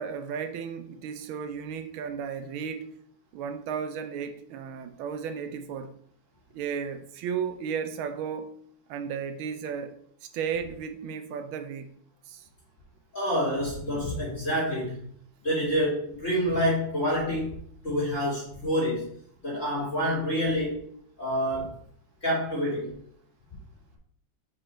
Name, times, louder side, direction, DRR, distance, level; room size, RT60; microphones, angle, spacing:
voice 1, 0.0-2.9 3.3-5.9 6.5-8.5 8.9-9.9 10.3-11.9 12.3-12.5, right 7 dB, 75° right, 1.5 m, -34 dB
voice 2, 13.1-15.0 15.4-17.5 17.8-19.0 19.4-20.7 21.2-21.7 22.2-22.9, equal, 35° left, 2.6 m, -27 dB
5.0 x 4.8 x 4.3 m
omnidirectional pair, 2.3 m